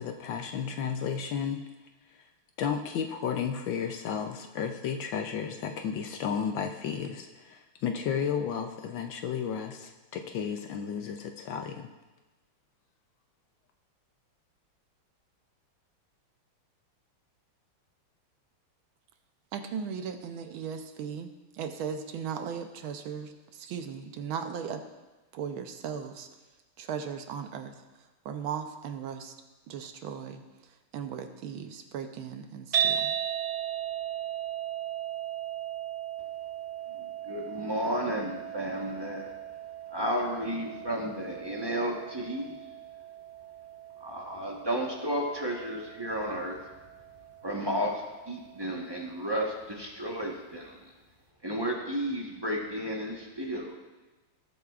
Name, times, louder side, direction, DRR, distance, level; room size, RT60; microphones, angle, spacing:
voice 1, 0.0-1.6 2.6-11.9, left 7 dB, 70° left, 5 dB, 1.3 m, -33 dB
voice 2, 19.5-24.8 25.3-26.3 26.8-27.7 28.2-29.3 29.7-33.1, right 7 dB, 75° right, 7 dB, 1.5 m, -37 dB
sound 1, 32.7-49.0, right 10 dB, 45° right, 0.9 m, -37 dB
voice 3, 37.2-39.3 39.9-42.6 44.0-46.6 47.4-47.9 48.3-50.7 51.4-53.8, equal, 20° right, -2 dB, 0.7 m, -32 dB
19.0 x 8.0 x 2.4 m, 1.2 s
omnidirectional pair, 2.4 m